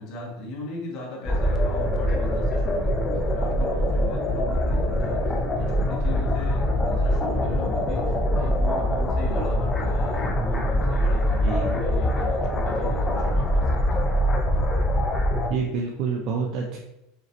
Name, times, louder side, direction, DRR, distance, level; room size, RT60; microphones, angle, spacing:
voice 1, 0.0-14.0, left 1 dB, 45° left, -2 dB, 1.4 m, -38 dB
sound 1, 1.3-15.5, equal, 20° left, 0.5 m, -23 dB
voice 2, 15.5-16.8, right 5 dB, 50° right, 0 dB, 0.5 m, -27 dB
5.0 x 2.7 x 3.2 m, 0.86 s
supercardioid pair, 150°, 0 cm